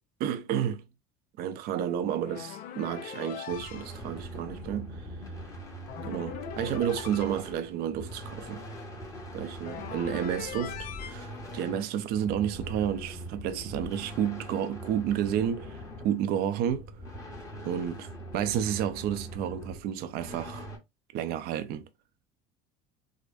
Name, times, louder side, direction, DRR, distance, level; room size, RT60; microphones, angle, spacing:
voice 1, 0.2-0.8 1.4-5.0 6.0-8.6 9.3-16.9 17.6-20.7 21.1-21.9, right 9 dB, 60° right, 0.6 m, -31 dB
sound 1, 2.2-4.0 5.9-7.6 9.6-11.2, left 9 dB, 55° left, 0.6 m, -41 dB
sound 2, 3.5-20.8, equal, 20° left, 1.3 m, -42 dB
4.9 x 2.1 x 2.5 m
cardioid pair, 125°, 18 cm